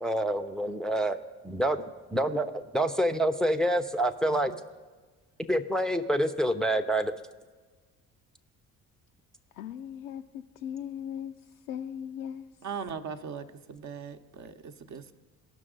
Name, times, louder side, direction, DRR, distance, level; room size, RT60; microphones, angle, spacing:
voice 1, 0.0-1.2 1.4-1.8 2.1-4.5 5.5-7.1, right 1 dB, ahead, 6 dB, 0.5 m, -27 dB
voice 2, 9.6-11.3 11.7-12.5, left 9 dB, 80° left, 5 dB, 0.5 m, -38 dB
voice 3, 12.6-15.1, right 6 dB, 40° right, 8 dB, 0.8 m, -40 dB
17.5 x 6.0 x 3.8 m, 1.3 s
hypercardioid pair, 50°, 43 cm